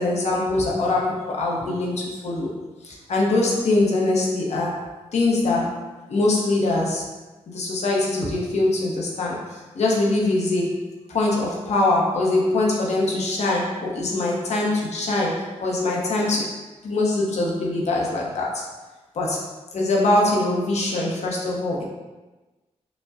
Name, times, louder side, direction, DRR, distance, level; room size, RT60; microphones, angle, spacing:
voice 1, 0.0-2.5 2.8-5.8 6.1-7.1 7.5-10.8 11.1-18.7 19.1-21.8, left 2 dB, 70° left, -3 dB, 0.8 m, -23 dB
5.2 x 2.1 x 2.4 m, 1.2 s
wide cardioid pair, 100°, 12 cm